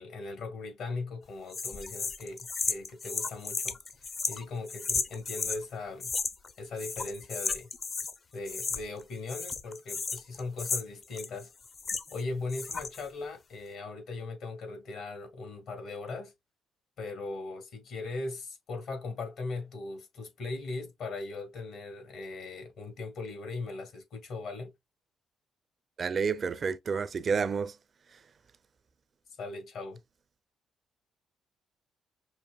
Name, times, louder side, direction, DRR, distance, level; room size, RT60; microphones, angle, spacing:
voice 1, 0.0-6.1 6.6-7.7 8.3-11.5 12.1-16.3 17.0-24.7 29.4-30.0, left 3 dB, 70° left, 1.9 m, -39 dB
sound 1, 1.5-5.6 6.0-6.5 6.8-8.2 8.5-9.0 9.3-12.2 12.5-13.1, left 4 dB, 40° left, 0.6 m, -34 dB
voice 2, 26.0-27.8, right 5 dB, 45° right, 0.4 m, -29 dB
5.8 x 2.6 x 2.3 m
cardioid pair, 90°, 0 cm